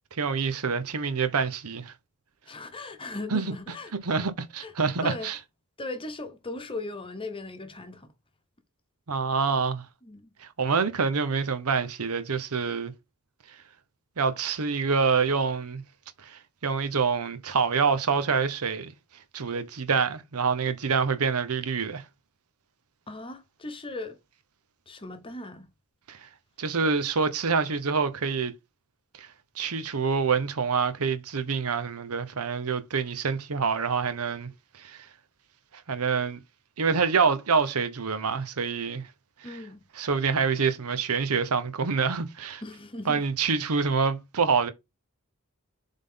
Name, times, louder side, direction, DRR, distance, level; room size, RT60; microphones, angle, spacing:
voice 1, 0.2-1.9 3.3-3.4 4.1-5.4 9.1-9.9 10.4-12.9 14.2-15.8 16.2-18.9 19.3-22.0 26.1-26.3 26.6-28.5 29.2-29.3 29.6-34.5 34.8-35.1 35.7-36.4 36.8-39.1 40.0-42.6 43.1-44.7, right 5 dB, 80° right, 0.8 m, -26 dB
voice 2, 2.5-4.2 4.6-4.7 5.0-5.3 5.8-8.1 10.0-10.3 23.1-24.2 24.9-25.7 39.4-39.8 42.6-43.2, left 2 dB, 25° left, 1.0 m, -38 dB
7.4 x 3.7 x 3.7 m
head